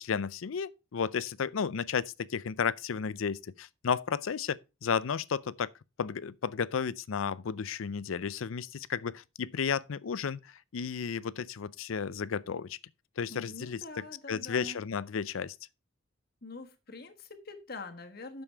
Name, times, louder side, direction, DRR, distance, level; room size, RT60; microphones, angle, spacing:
voice 1, 0.0-5.7 6.0-12.8 13.2-15.5, left 6 dB, 80° left, 0.5 m, -33 dB
voice 2, 13.3-14.8 16.4-18.4, left 3 dB, 50° left, 1.4 m, -45 dB
8.8 x 7.0 x 4.5 m
head